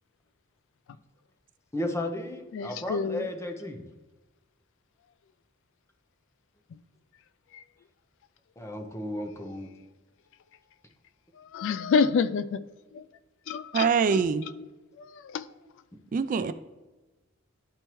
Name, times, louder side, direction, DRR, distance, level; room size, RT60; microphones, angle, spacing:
voice 1, 1.7-3.8 8.6-9.7, left 1 dB, 15° left, 5 dB, 0.7 m, -34 dB
voice 2, 2.5-3.3 6.7-6.8 7.5-7.6 11.4-12.6 12.9-13.1 13.5-14.5 15.0-15.5, left 5 dB, 65° left, 15 dB, 0.3 m, -29 dB
voice 3, 13.7-14.4 16.1-16.5, right 6 dB, 40° right, 12 dB, 0.3 m, -24 dB
10.5 x 4.4 x 3.0 m, 1.2 s
head